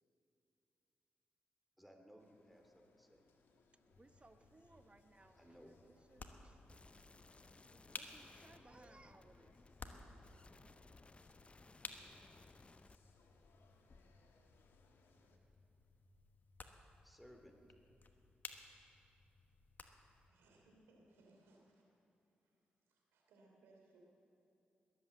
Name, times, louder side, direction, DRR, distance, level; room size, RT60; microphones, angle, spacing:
voice 1, 1.8-3.2 5.4-5.7 17.0-17.5, equal, ahead, 4 dB, 2.4 m, -61 dB
sound 1, 2.2-15.4, left 3 dB, 75° left, 1.4 m, -72 dB
sound 2, 3.9-20.3, left 4 dB, 50° left, 1.2 m, -58 dB
voice 2, 3.9-5.6 5.8-6.6 6.9-7.1 7.4-9.6, right 2 dB, 30° right, 10 dB, 0.9 m, -65 dB
sound 3, 6.7-13.0, left 3 dB, 30° left, 0.5 m, -63 dB
voice 3, 20.3-21.9 22.4-24.0, right 2 dB, 90° right, -1 dB, 3.0 m, -68 dB
21.0 x 8.2 x 7.5 m, 2.7 s
supercardioid pair, 45°, 4 cm